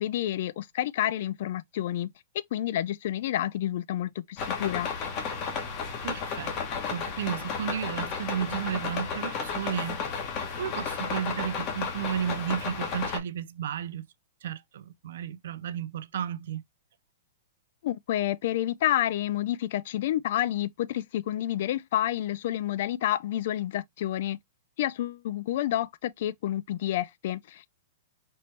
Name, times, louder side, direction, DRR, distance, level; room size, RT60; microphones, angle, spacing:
voice 1, 0.0-2.1 2.5-4.9 17.8-24.4 24.8-27.7, left 12 dB, 40° left, 0.3 m, -29 dB
sound 1, 4.4-13.2, left 5 dB, 25° left, 1.0 m, -33 dB
voice 2, 6.0-6.5 6.9-10.0 10.5-14.1 14.4-16.6, right 9 dB, 55° right, 0.3 m, -33 dB
4.2 x 3.2 x 3.1 m
hypercardioid pair, 180°, 0 cm